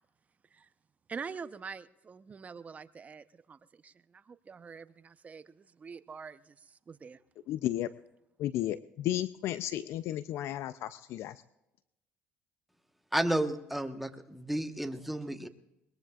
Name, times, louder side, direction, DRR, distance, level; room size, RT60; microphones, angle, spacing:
voice 1, 1.1-7.2, right 5 dB, 30° right, 12 dB, 0.8 m, -45 dB
voice 2, 7.5-7.9 8.4-11.4, left 13 dB, 65° left, 14 dB, 0.5 m, -33 dB
voice 3, 13.1-15.5, right 1 dB, 5° right, 7 dB, 1.2 m, -32 dB
21.5 x 21.0 x 2.4 m, 0.89 s
supercardioid pair, 90°, 5 cm